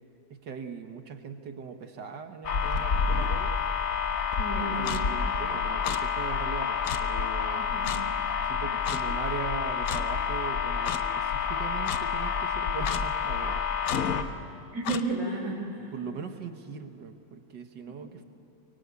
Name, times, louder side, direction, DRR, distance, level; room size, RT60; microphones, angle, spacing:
voice 1, 0.3-3.5 4.8-7.8 8.4-13.6 15.8-18.2, right 6 dB, 75° right, 7 dB, 2.1 m, -40 dB
sound 1, 2.4-14.2, left 6 dB, 50° left, 1.6 m, -29 dB
voice 2, 4.4-4.9 7.5-8.0 14.7-15.9 17.9-18.0, right 2 dB, 45° right, -7 dB, 5.3 m, -32 dB
Clock, 4.8-5.0 5.8-6.0 6.8-7.0 7.8-8.0 8.9-9.0 9.9-10.0 10.8-11.0 11.8-12.0 12.8-13.0 13.8-14.0 14.9-15.0, left 9 dB, 75° left, 1.5 m, -33 dB
24.5 x 24.0 x 8.4 m, 2.7 s
omnidirectional pair, 1.9 m